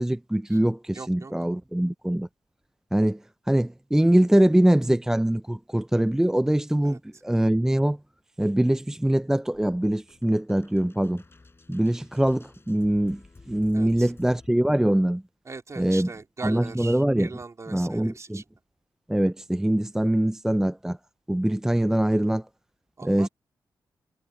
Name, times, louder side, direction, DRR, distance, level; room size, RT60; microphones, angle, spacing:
voice 1, 0.0-2.3 2.9-3.2 3.5-8.0 8.4-11.2 11.7-15.2 15.8-16.1 16.4-17.3 17.7-18.4 19.1-21.0 21.3-22.4 23.0-23.3, right 1 dB, 5° right, 0.4 m, -23 dB
voice 2, 0.9-1.3 6.8-7.0 13.7-14.1 15.5-18.4 23.0-23.3, right 4 dB, 40° right, 3.6 m, -40 dB
sound 1, 9.5-14.5, left 3 dB, 30° left, 7.5 m, -53 dB
cardioid pair, 70°, 8 cm